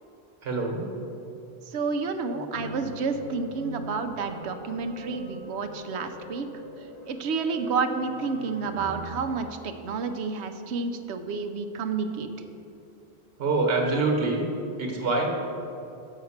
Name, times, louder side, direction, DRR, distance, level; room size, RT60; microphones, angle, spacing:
voice 1, 0.4-0.9 2.3-2.4 13.4-14.5 14.8-15.3, right 3 dB, 65° right, 1 dB, 1.5 m, -25 dB
voice 2, 1.6-6.5 6.8-12.3, right 4 dB, 85° right, 7 dB, 1.0 m, -30 dB
sound 1, 2.5-9.1, left 1 dB, 40° left, 1.1 m, -43 dB
7.4 x 5.8 x 7.2 m, 2.7 s
omnidirectional pair, 1.1 m